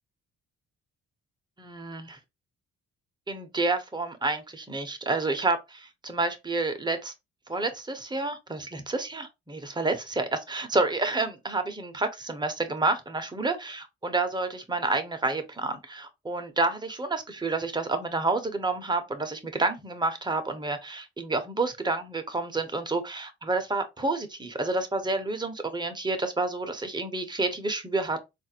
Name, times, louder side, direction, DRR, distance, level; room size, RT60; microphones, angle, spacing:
voice 1, 1.6-2.2 3.3-7.1 7.5-28.2, right 3 dB, 15° right, 0.8 m, -29 dB
3.8 x 2.5 x 2.8 m
cardioid pair, 90°, 30 cm